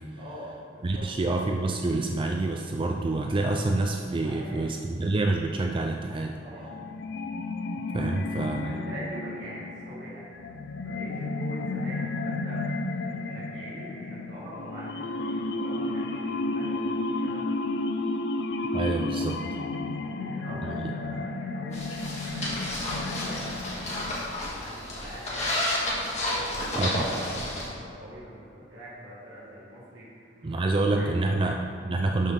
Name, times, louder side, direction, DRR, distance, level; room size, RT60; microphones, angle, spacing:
voice 1, 0.2-1.0 4.1-4.6 6.4-6.7 8.0-8.1 8.6-10.3 10.8-12.6 13.0-17.4 20.0-21.9 22.2-24.0 24.4-25.5 26.4-31.2 31.4-31.5, equal, 70° right, -11 dB, 2.2 m, -43 dB
voice 2, 0.8-6.4 7.9-8.8 18.7-19.6 20.6-20.9 26.8-27.1 30.4-32.3, right 2 dB, 30° right, 2 dB, 0.4 m, -27 dB
sound 1, 6.6-24.6, left 2 dB, 65° left, 0.4 m, -32 dB
sound 2, 21.7-27.7, left 1 dB, 40° left, 1.9 m, -31 dB
12.0 x 5.4 x 3.8 m, 2.2 s
head